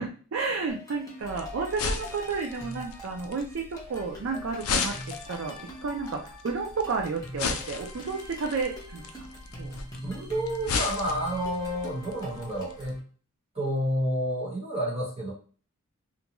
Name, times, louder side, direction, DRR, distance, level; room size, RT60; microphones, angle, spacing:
voice 1, 0.0-3.6 3.9-9.0 9.6-9.7, right 4 dB, 60° right, 1 dB, 0.4 m, -32 dB
sound 1, 0.7-13.0, equal, 15° left, 0.7 m, -44 dB
sound 2, 1.2-12.9, left 5 dB, 75° left, 0.4 m, -36 dB
voice 2, 10.0-13.0 13.5-15.3, equal, 30° right, -6 dB, 1.2 m, -30 dB
2.5 x 2.2 x 2.9 m, 0.40 s
head